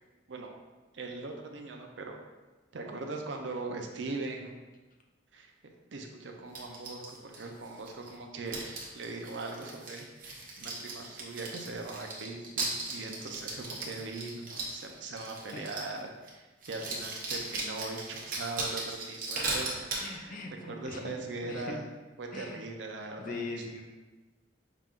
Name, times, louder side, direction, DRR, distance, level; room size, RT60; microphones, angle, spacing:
voice 1, 0.9-2.2 2.7-4.6 5.3-5.5 5.9-20.4 20.7-21.8 22.2-23.4, right 3 dB, 70° right, 2 dB, 0.6 m, -40 dB
sound 1, 6.5-8.1 8.5-16.0 16.3-16.4 16.6-20.1, right 2 dB, 50° right, 0.9 m, -37 dB
voice 2, 19.9-21.9 22.3-22.7 23.0-23.8, left 3 dB, 45° left, 1 dB, 0.6 m, -41 dB
5.6 x 2.5 x 3.6 m, 1.2 s
head